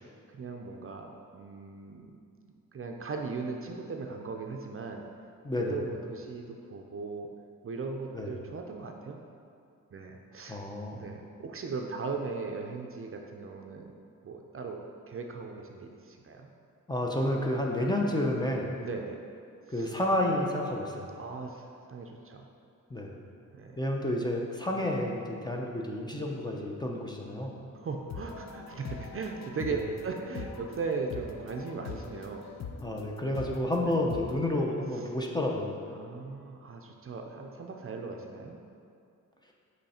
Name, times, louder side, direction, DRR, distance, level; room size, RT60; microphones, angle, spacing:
voice 1, 0.3-2.2 2.7-5.0 5.6-7.3 7.6-9.2 9.9-10.6 10.9-13.9 14.2-16.5 18.8-19.2 19.7-19.9 21.1-22.5 23.5-23.8 27.7-29.8 30.0-32.5 33.8-34.0 34.9-35.1 35.9-38.6, right 4 dB, 45° right, 2 dB, 0.5 m, -38 dB
voice 2, 5.4-5.8 8.1-8.3 10.5-11.1 16.9-18.7 19.7-21.1 22.9-23.2 23.8-27.6 29.7-29.8 32.8-35.8, left 1 dB, 15° left, -1 dB, 0.6 m, -30 dB
sound 1, 28.1-34.3, left 5 dB, 55° left, 0.6 m, -43 dB
7.9 x 3.2 x 4.2 m, 2.4 s
wide cardioid pair, 110°, 32 cm